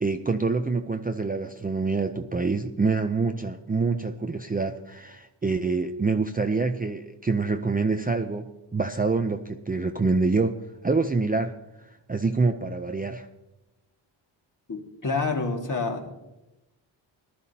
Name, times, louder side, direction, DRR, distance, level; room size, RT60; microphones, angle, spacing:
voice 1, 0.0-10.6 10.8-11.5 12.1-13.3, right 4 dB, 20° right, 6 dB, 0.5 m, -26 dB
voice 2, 14.7-16.2, left 3 dB, 40° left, 2 dB, 2.0 m, -28 dB
19.0 x 12.0 x 2.8 m, 1.0 s
wide cardioid pair, 100°, 48 cm